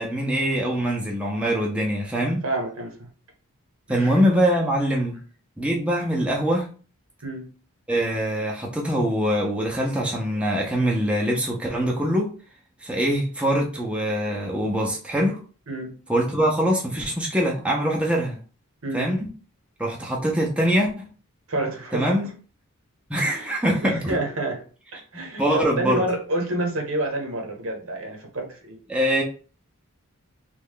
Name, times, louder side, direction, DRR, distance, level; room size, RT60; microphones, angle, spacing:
voice 1, 0.0-2.4 3.9-5.2 5.6-6.7 7.9-12.3 12.8-15.4 16.1-18.4 18.9-19.3 19.8-21.1 21.9-22.3 23.1-24.2 25.1-26.0 28.9-29.2, equal, 5° right, 0.7 m, -23 dB
voice 2, 2.4-3.1 3.9-4.2 7.2-7.5 15.7-16.0 18.8-19.1 21.5-22.1 23.2-24.6 24.9-28.8, right 1 dB, 70° right, 1.0 m, -29 dB
3.2 x 2.4 x 3.6 m
head